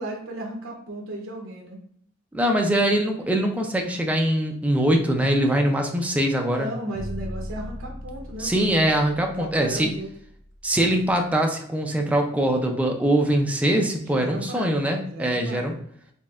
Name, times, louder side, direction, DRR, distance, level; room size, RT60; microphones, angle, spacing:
voice 1, 0.0-1.8 6.4-8.8 9.4-10.1 14.0-15.8, right 1 dB, 75° right, 0 dB, 0.7 m, -35 dB
voice 2, 2.3-6.7 8.4-9.9 10.6-15.7, right 1 dB, 5° right, 2 dB, 0.3 m, -22 dB
sound 1, 6.9-11.0, equal, 60° left, 1.0 m, -38 dB
4.2 x 3.1 x 2.3 m, 0.66 s
head